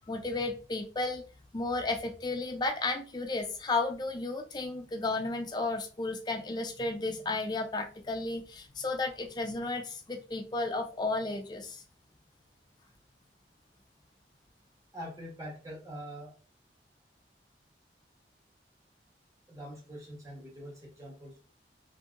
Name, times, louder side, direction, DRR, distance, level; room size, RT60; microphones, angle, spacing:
voice 1, 0.1-1.2 1.5-11.8, left 3 dB, 25° left, 6 dB, 0.4 m, -33 dB
voice 2, 14.9-16.3 19.5-21.4, equal, 20° right, -4 dB, 1.0 m, -44 dB
2.7 x 2.6 x 2.4 m, 0.37 s
head